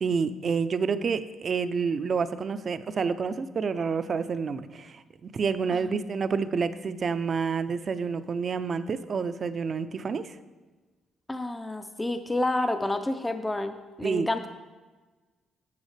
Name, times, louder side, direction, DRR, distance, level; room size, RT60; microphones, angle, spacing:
voice 1, 0.0-10.4 14.0-14.3, right 5 dB, 45° right, 12 dB, 0.4 m, -28 dB
voice 2, 11.3-14.5, left 2 dB, 15° left, 8 dB, 0.4 m, -29 dB
10.5 x 7.3 x 3.3 m, 1.3 s
cardioid pair, 90°, 0 cm